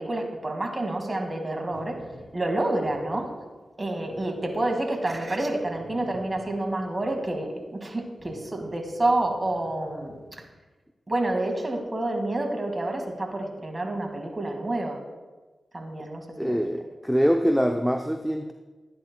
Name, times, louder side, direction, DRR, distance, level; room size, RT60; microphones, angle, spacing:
voice 1, 0.0-2.0 2.3-3.3 3.8-10.1 11.1-15.0 15.7-16.6, right 2 dB, 35° right, 3 dB, 2.1 m, -28 dB
sound 1, 1.7-7.6 8.0-10.5, left 1 dB, 30° left, 3.5 m, -50 dB
voice 2, 16.4-18.5, equal, ahead, 5 dB, 0.7 m, -24 dB
15.5 x 10.5 x 2.3 m, 1.2 s
cardioid pair, 50°, 0 cm